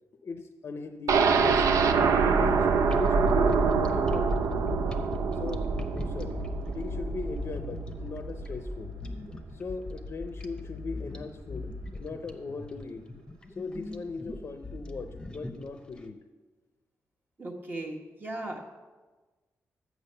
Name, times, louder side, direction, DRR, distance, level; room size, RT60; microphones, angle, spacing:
voice 1, 0.2-1.8 2.2-4.4 5.3-6.4 6.7-8.9 9.5-11.7 12.0-13.1 13.6-16.2, left 4 dB, 50° left, 7 dB, 0.6 m, -39 dB
sound 1, 1.1-9.0 9.3-9.4 9.8-9.9, right 5 dB, 85° right, 0.5 m, -25 dB
sound 2, 2.9-16.0, left 2 dB, 15° left, 0.7 m, -38 dB
voice 2, 17.4-18.6, right 1 dB, 35° right, -1 dB, 1.2 m, -37 dB
7.1 x 6.2 x 6.6 m, 1.3 s
wide cardioid pair, 115°, 6 cm